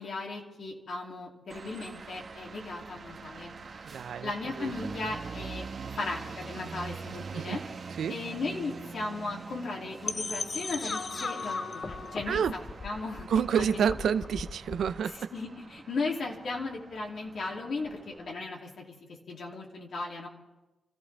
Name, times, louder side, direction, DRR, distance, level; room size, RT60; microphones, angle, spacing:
voice 1, 0.0-3.8 4.2-5.6 5.9-7.6 8.1-13.9 15.3-18.8 19.3-20.3, left 3 dB, 70° left, -1 dB, 2.8 m, -36 dB
sound 1, 1.5-18.4, right 5 dB, 55° right, 1.3 m, -44 dB
voice 2, 3.9-4.7 7.3-7.6 8.0-8.1 12.3-12.5 13.3-15.2, right 7 dB, 80° right, 12 dB, 0.6 m, -28 dB
sound 2, 10.0-15.0, left 4 dB, 45° left, 0.7 m, -37 dB
30.0 x 14.0 x 3.5 m, 1.0 s
cardioid pair, 65°, 0 cm